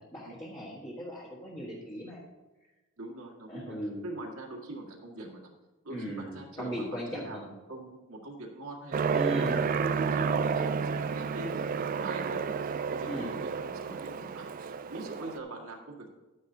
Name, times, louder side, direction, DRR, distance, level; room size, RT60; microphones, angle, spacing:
voice 1, 0.0-2.2 3.5-4.1 5.9-7.4 9.1-9.6 13.1-13.3, equal, 20° left, -5 dB, 1.5 m, -37 dB
voice 2, 3.0-3.8 4.0-5.5 5.8-16.1, right 2 dB, 75° right, 0 dB, 2.0 m, -42 dB
Aircraft, 8.9-15.4, right 6 dB, 40° right, 0.3 m, -31 dB
11.5 x 9.5 x 2.8 m, 1.1 s
head